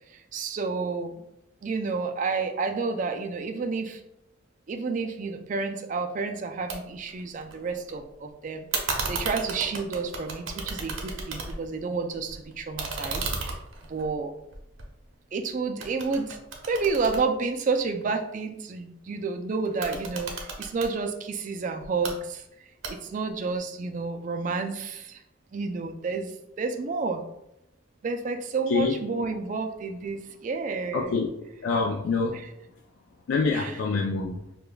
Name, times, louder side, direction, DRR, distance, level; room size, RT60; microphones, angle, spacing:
voice 1, 0.1-1.2 1.6-4.0 4.7-13.3 13.9-14.3 15.3-16.4 16.7-25.2 25.5-27.2 28.0-31.2 32.3-32.5 33.5-33.8, right 4 dB, 40° right, 6 dB, 0.3 m, -30 dB
sound 1, 6.7-6.8 7.1-7.9 8.7-11.8 12.1-15.4 15.8-18.0 19.7-20.9 21.8-22.1 22.8-23.3, right 4 dB, 75° right, 0.6 m, -34 dB
voice 2, 30.9-31.3 31.6-32.4 33.3-34.4, left 4 dB, 75° left, 0 dB, 0.3 m, -25 dB
4.9 x 2.3 x 2.2 m, 0.84 s
head